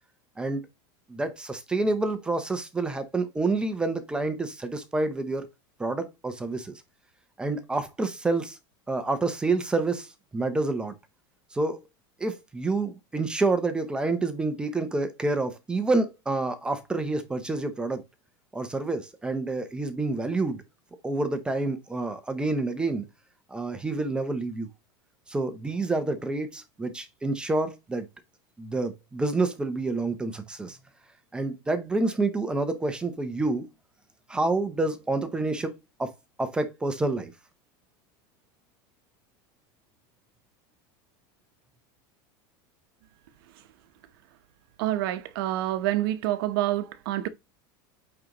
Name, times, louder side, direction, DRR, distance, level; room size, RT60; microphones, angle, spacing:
voice 1, 1.1-5.5 5.8-6.8 7.4-8.6 8.9-10.9 11.5-11.8 12.2-18.0 18.5-20.6 21.0-23.0 23.5-24.7 25.3-28.1 28.6-30.8 31.3-33.7 34.3-36.1 36.4-37.3, right 3 dB, 5° right, 0.6 m, -28 dB
voice 2, 44.8-47.3, right 14 dB, 60° right, 0.9 m, -27 dB
8.6 x 3.9 x 2.9 m
supercardioid pair, 175°, 13 cm